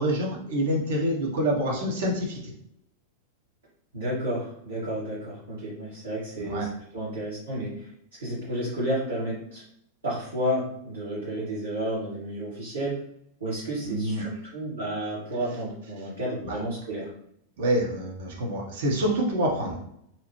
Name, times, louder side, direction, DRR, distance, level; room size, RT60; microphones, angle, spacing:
voice 1, 0.0-2.5 6.4-6.7 13.8-14.3 16.4-16.6 17.6-19.8, right 1 dB, 55° right, 0 dB, 0.7 m, -27 dB
voice 2, 3.9-7.9 8.2-9.6 10.0-13.0 13.4-17.1, right 1 dB, 75° right, -10 dB, 1.1 m, -31 dB
2.8 x 2.0 x 3.0 m, 0.73 s
figure-of-eight pair, 90°, 0 cm